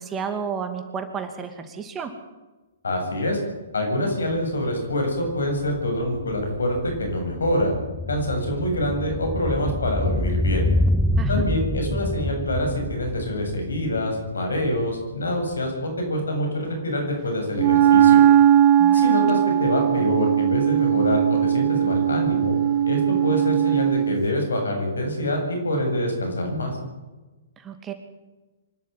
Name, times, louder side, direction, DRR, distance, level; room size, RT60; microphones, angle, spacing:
voice 1, 0.0-2.1 11.2-11.5 18.8-19.0 27.6-27.9, right 6 dB, 20° right, 7 dB, 2.6 m, -32 dB
voice 2, 2.8-3.4 3.7-7.7 8.1-10.7 11.3-18.2 18.9-22.5 22.9-26.8, left 1 dB, 80° left, 3 dB, 7.9 m, -25 dB
sound 1, 4.3-4.4 4.7-15.0 15.3-15.4, left 1 dB, ahead, 0.8 m, -27 dB
Wind instrument woodwind instrument, 17.6-24.2, right 10 dB, 35° right, 1.1 m, -18 dB
25.0 x 12.5 x 9.3 m, 1.2 s
hypercardioid pair, 125°, 0 cm